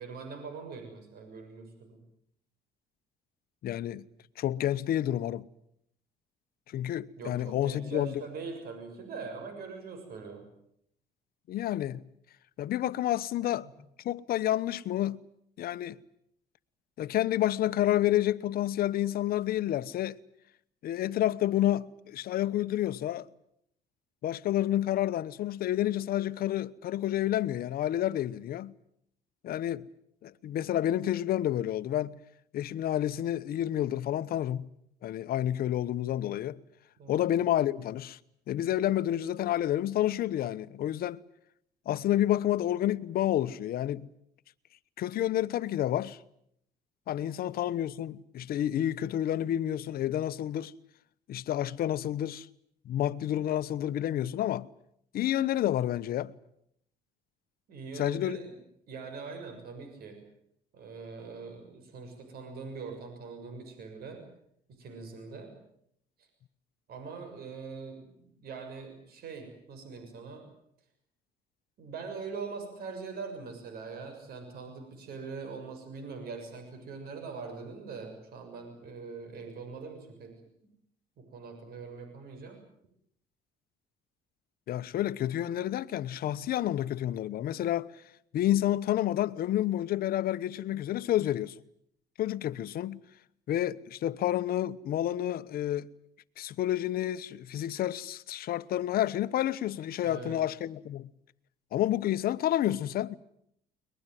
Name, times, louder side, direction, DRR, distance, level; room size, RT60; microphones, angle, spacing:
voice 1, 0.0-2.0 7.2-10.5 13.6-13.7 37.0-37.3 57.7-58.5 58.9-60.2 60.7-64.2 64.7-65.6 66.2-66.3 66.9-70.4 71.8-80.3 81.2-82.6 100.0-100.4, right 4 dB, 65° right, 6.8 m, -42 dB
voice 2, 3.6-4.0 4.4-5.4 6.7-8.2 11.5-12.0 12.6-13.7 14.0-15.2 15.6-16.0 17.0-20.2 20.8-23.3 24.2-28.7 29.4-29.9 30.2-32.2 32.5-34.7 35.0-36.6 37.1-38.2 38.5-41.2 41.9-44.1 45.0-46.2 47.1-50.7 51.3-52.5 52.8-54.7 55.1-56.3 57.9-58.4 84.7-87.9 88.3-91.5 92.2-93.0 93.5-95.9 96.4-101.1 101.7-103.2, left 12 dB, 65° left, 1.0 m, -29 dB
22.5 x 21.0 x 9.3 m
cardioid pair, 110°, 17 cm